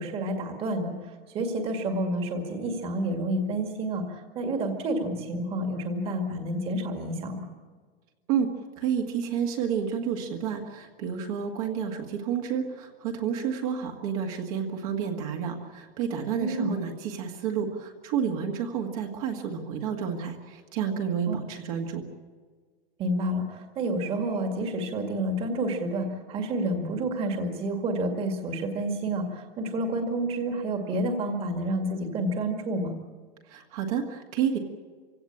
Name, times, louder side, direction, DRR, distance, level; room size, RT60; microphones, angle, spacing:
voice 1, 0.0-7.4 16.4-16.7 21.3-21.4 23.0-33.0, right 1 dB, 20° right, 4 dB, 2.0 m, -29 dB
voice 2, 8.8-22.0 33.5-34.6, right 7 dB, 40° right, 2 dB, 1.9 m, -30 dB
25.5 x 17.0 x 8.6 m, 1.5 s
supercardioid pair, 180°, 29 cm